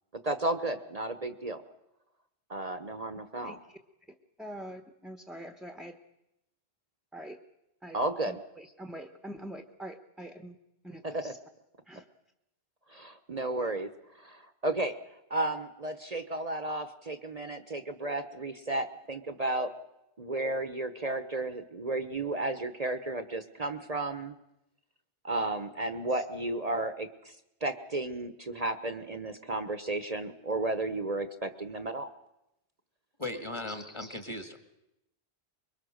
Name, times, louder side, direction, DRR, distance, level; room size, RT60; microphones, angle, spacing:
voice 1, 0.2-1.6 2.5-3.6 7.9-8.4 11.0-11.3 12.9-13.9 14.2-14.9 15.3-19.7 20.2-24.4 25.2-27.4 27.6-32.1, right 2 dB, 40° right, 9 dB, 1.1 m, -33 dB
voice 2, 3.4-3.8 4.4-6.0 7.1-7.4 7.8-8.0 8.3-10.6 10.8-11.4 11.9-12.0 26.1-26.2 33.7-34.2, right 1 dB, ahead, 6 dB, 1.0 m, -45 dB
voice 3, 33.2-34.6, left 2 dB, 30° left, 7 dB, 2.0 m, -37 dB
24.5 x 22.5 x 6.5 m, 0.88 s
omnidirectional pair, 1.0 m